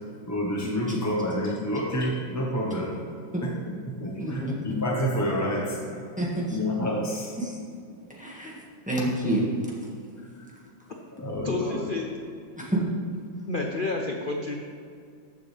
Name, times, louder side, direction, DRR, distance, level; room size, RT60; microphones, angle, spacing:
voice 1, 0.3-2.9 3.4-7.3 10.3-10.4 11.2-11.9, equal, 15° left, -3 dB, 0.6 m, -29 dB
voice 2, 4.2-4.6 6.2-6.6 7.4-7.5 8.1-8.6 8.9-9.5 12.6-12.8, right 1 dB, 5° right, -5 dB, 1.6 m, -28 dB
voice 3, 11.4-12.1 13.5-14.6, left 3 dB, 75° left, 1 dB, 0.4 m, -30 dB
14.5 x 7.0 x 3.4 m, 2.3 s
omnidirectional pair, 2.1 m